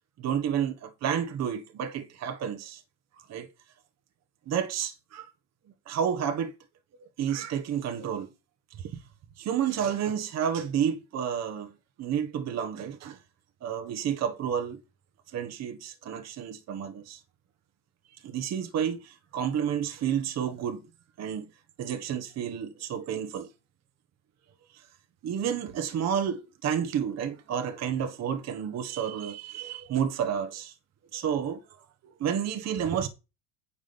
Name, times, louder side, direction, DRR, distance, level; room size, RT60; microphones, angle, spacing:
voice 1, 0.2-2.8 3.2-3.5 4.5-5.3 5.9-6.5 7.2-8.3 8.8-8.9 9.4-11.7 12.0-13.2 13.6-14.8 15.3-17.2 18.1-20.8 21.2-21.4 21.8-23.5 25.2-30.7 31.1-31.6 32.0-33.1, right 8 dB, 45° right, 1.4 m, -30 dB
10.0 x 5.1 x 5.3 m
hypercardioid pair, 90°, 37 cm